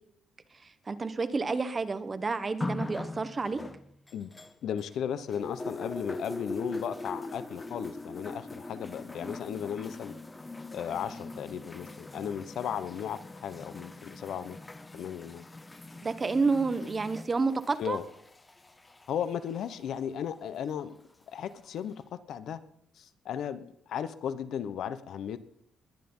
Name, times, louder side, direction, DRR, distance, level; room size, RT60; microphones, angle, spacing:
voice 1, 0.9-3.6 16.0-18.0, right 4 dB, 25° right, 11 dB, 1.1 m, -29 dB
sound 1, 2.6-5.0 5.3-20.0 20.9-21.0, left 2 dB, 15° left, 0.8 m, -41 dB
voice 2, 4.6-10.1 10.7-14.6 14.9-15.4 17.8-18.0 19.1-21.0 21.3-22.6 23.0-25.4, left 8 dB, 65° left, 13 dB, 1.1 m, -35 dB
21.0 x 10.5 x 5.6 m, 0.71 s
cardioid pair, 160°, 0 cm